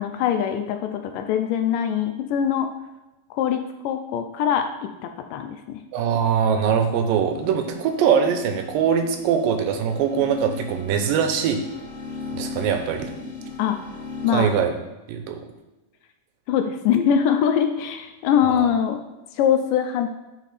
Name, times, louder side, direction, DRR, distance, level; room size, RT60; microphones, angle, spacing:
voice 1, 0.0-2.7 3.3-5.8 13.6-13.8 14.2-14.5 16.5-19.0 19.3-20.1, left 8 dB, 80° left, 6 dB, 2.0 m, -23 dB
voice 2, 5.9-11.6 12.3-13.1 14.3-14.7 15.1-15.4 18.5-18.7, right 7 dB, 85° right, 6 dB, 2.4 m, -22 dB
sound 1, 7.3-14.3, left 4 dB, 55° left, 2.8 m, -37 dB
9.8 x 4.2 x 4.1 m, 1.0 s
omnidirectional pair, 4.0 m